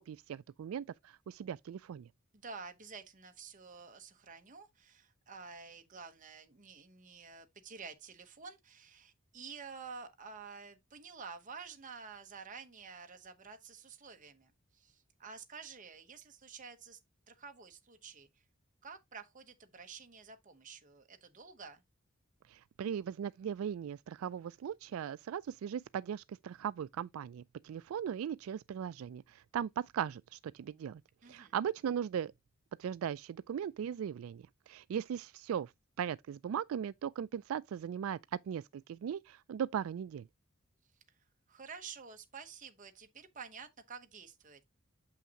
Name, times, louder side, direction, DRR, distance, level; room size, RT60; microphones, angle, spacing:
voice 1, 0.0-2.1 22.5-31.0 31.3-32.3 32.8-35.7 36.0-38.2 38.5-40.3, right 8 dB, 90° right, 0.3 m, -38 dB
voice 2, 2.3-17.0 17.3-18.3 18.8-21.8 31.2-31.5 41.5-44.6, right 5 dB, 40° right, 1.0 m, -50 dB
7.2 x 5.7 x 2.9 m
head